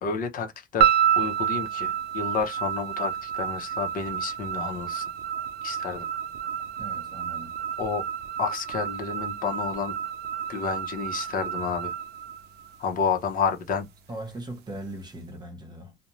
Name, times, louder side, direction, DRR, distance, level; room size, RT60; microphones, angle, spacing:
voice 1, 0.0-5.0 5.6-6.1 7.8-8.0 8.4-9.9 10.5-12.0 12.8-13.9, left 5 dB, 55° left, 0.7 m, -30 dB
sound 1, 0.8-13.1, right 9 dB, 75° right, 0.5 m, -29 dB
voice 2, 6.7-7.6 14.1-16.0, right 1 dB, 25° right, 1.1 m, -39 dB
2.5 x 2.1 x 3.0 m
cardioid pair, 110°, 17 cm